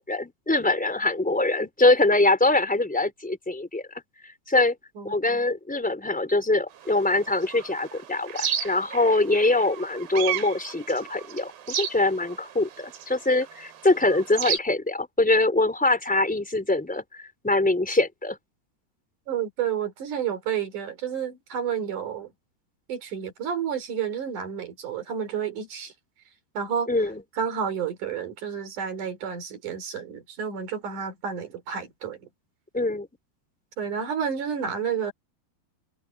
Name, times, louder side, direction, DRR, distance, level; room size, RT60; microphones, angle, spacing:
voice 1, 0.1-3.8 4.5-4.8 5.0-17.0 17.4-18.4 26.9-27.2 32.7-33.1, left 2 dB, ahead, 3.8 m, -23 dB
voice 2, 5.0-5.5 19.3-22.3 22.9-25.9 26.5-26.9 27.4-32.3 33.8-35.1, right 7 dB, 50° right, 4.8 m, -30 dB
sound 1, 6.8-14.6, right 9 dB, 85° right, 4.7 m, -34 dB
omnidirectional pair, 4.6 m